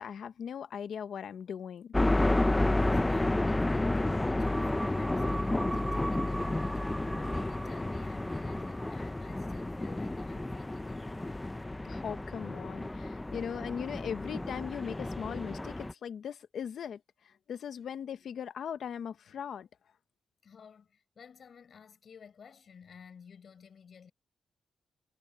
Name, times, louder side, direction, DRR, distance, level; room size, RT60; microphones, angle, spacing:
voice 1, 0.0-1.9 11.8-19.7, left 8 dB, 70° left, 1.2 m, -39 dB
sound 1, 1.9-15.9, left 2 dB, 15° left, 0.7 m, -31 dB
voice 2, 2.7-11.1 20.4-24.1, left 6 dB, 55° left, 7.3 m, -54 dB
sound 2, 4.4-10.8, right 1 dB, 10° right, 2.8 m, -43 dB
cardioid pair, 105°, 0 cm